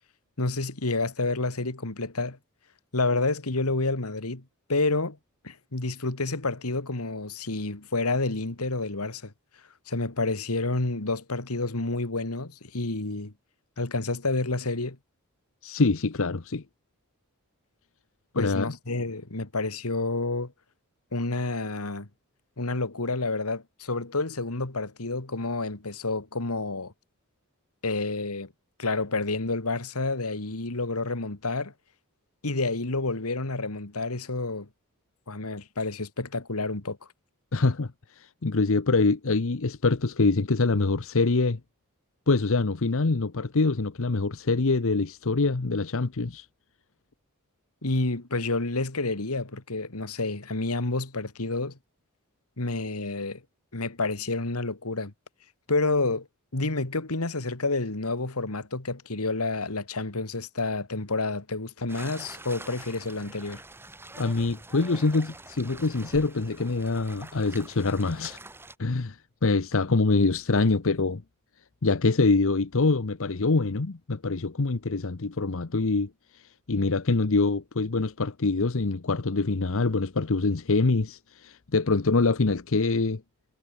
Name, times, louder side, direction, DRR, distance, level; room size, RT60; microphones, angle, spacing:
voice 1, 0.4-2.4 2.9-4.4 4.7-5.2 5.4-9.3 9.9-13.3 13.8-15.0 18.3-20.5 21.1-22.1 22.6-26.9 27.8-28.5 28.8-31.7 32.4-34.7 35.3-37.0 47.8-51.8 52.6-53.4 53.7-55.1 55.7-56.3 56.5-63.6, left 3 dB, 80° left, 2.2 m, -29 dB
voice 2, 15.6-16.6 18.3-18.7 37.5-41.6 42.3-46.5 64.2-68.4 68.8-71.2 71.8-83.2, left 3 dB, 65° left, 0.9 m, -25 dB
sound 1, 61.9-68.8, right 2 dB, 10° right, 1.6 m, -45 dB
head